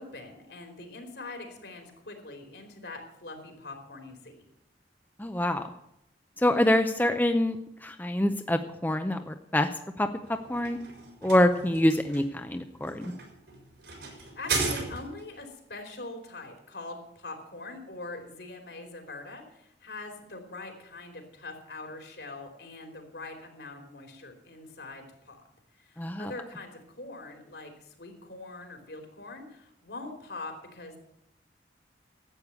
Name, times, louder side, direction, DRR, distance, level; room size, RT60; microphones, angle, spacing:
voice 1, 0.0-4.4 14.1-25.4 25.8-31.0, left 2 dB, 75° left, 4 dB, 3.2 m, -43 dB
voice 2, 5.2-5.7 6.4-9.7 10.0-10.1 10.5-10.8 11.2-13.1 26.0-26.3, left 1 dB, 10° left, 7 dB, 0.5 m, -25 dB
sound 1, 10.2-15.4, right 3 dB, 75° right, 4.7 m, -35 dB
12.0 x 8.5 x 8.1 m, 0.81 s
head